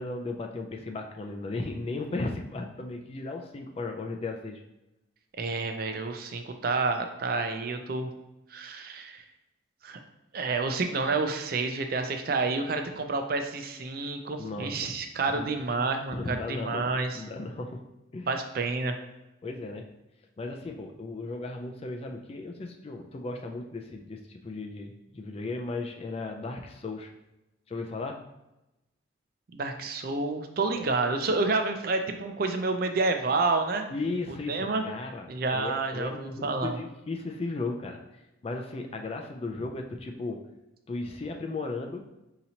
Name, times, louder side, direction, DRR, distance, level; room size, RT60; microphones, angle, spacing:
voice 1, 0.0-4.6 14.4-14.9 15.3-15.5 16.1-17.9 18.1-18.4 19.4-19.9 20.4-27.1 27.7-28.2 30.7-30.9 33.9-35.3 35.5-38.0 38.4-40.4 40.9-42.1, left 3 dB, 30° left, 3 dB, 0.3 m, -36 dB
voice 2, 5.4-8.1 8.5-9.2 9.8-10.0 10.3-17.2 18.3-18.9 29.5-33.9 34.5-34.8 35.3-36.8, right 3 dB, 50° right, 6 dB, 0.4 m, -29 dB
5.1 x 2.9 x 2.8 m, 0.94 s
head